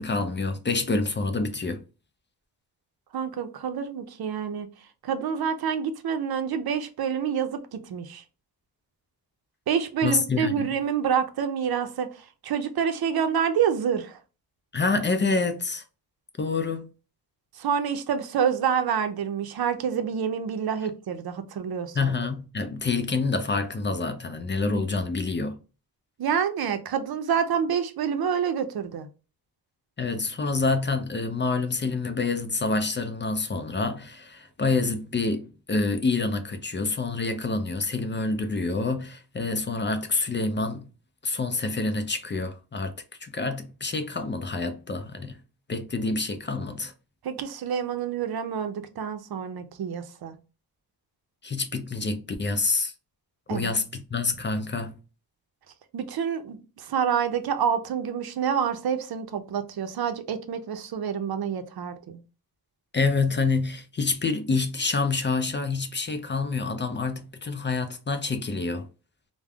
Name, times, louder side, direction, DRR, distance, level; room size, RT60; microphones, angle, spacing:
voice 1, 0.0-1.8 10.0-10.7 14.7-15.8 16.4-16.9 21.9-25.6 30.0-40.9 41.2-42.9 43.2-45.4 45.7-46.9 51.4-52.9 53.5-55.0 62.9-68.9, left 3 dB, 30° left, 0.5 m, -27 dB
voice 2, 3.1-4.7 5.0-8.2 9.7-14.2 17.6-22.1 26.2-29.1 47.2-50.4 53.5-53.8 55.9-62.2, right 7 dB, 65° right, 0.6 m, -27 dB
3.4 x 2.1 x 2.2 m
cardioid pair, 65°, 40 cm